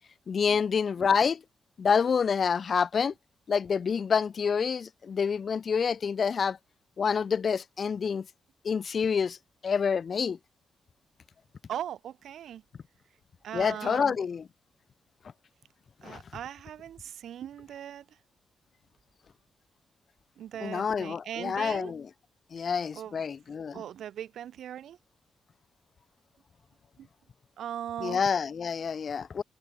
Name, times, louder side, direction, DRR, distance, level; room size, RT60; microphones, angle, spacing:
voice 1, 0.3-1.4 1.8-3.1 3.5-6.6 7.0-8.2 8.6-9.4 9.6-10.4 13.5-14.4 16.0-16.2 20.6-22.1 22.5-23.8 28.0-29.4, left 6 dB, 45° left, 3.3 m, -27 dB
voice 2, 11.7-12.6 13.4-14.2 16.0-18.2 20.4-21.9 22.6-22.7 22.9-23.2 23.7-25.0 27.0-27.1 27.6-28.2, right 10 dB, 90° right, 6.3 m, -39 dB
wide cardioid pair, 135°, 0 cm